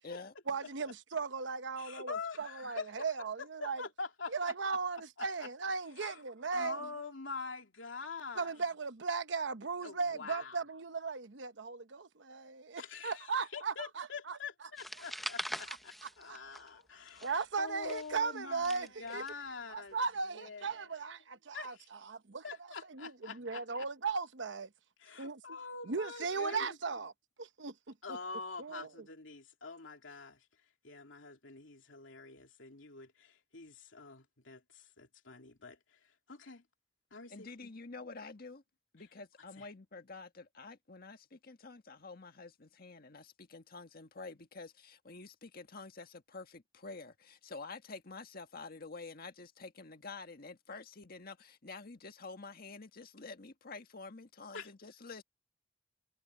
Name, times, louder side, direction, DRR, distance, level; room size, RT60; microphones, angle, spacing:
voice 1, 0.5-3.8 4.3-6.9 8.4-14.4 15.7-15.8 16.0-16.4 17.2-19.2 19.7-24.7 25.2-25.6 25.8-27.1 27.4-28.2 28.6-29.1, right 4 dB, 70° right, 1.0 m, -37 dB
voice 2, 1.8-2.9 3.4-4.5 5.2-5.5 6.0-6.2 6.5-8.5 9.8-10.6 12.7-17.3 17.6-20.0 20.3-20.7 21.5-21.9 22.4-23.9 25.0-26.7 28.0-30.4 30.8-35.8 36.3-36.6 37.1-37.7 39.6-39.7 54.5-54.7, left 4 dB, 85° left, 2.8 m, -45 dB
sound 1, 14.8-16.8 17.1-19.3, equal, ahead, 0.8 m, -43 dB
voice 3, 37.3-38.6 38.9-55.2, left 3 dB, 50° left, 1.6 m, -48 dB
head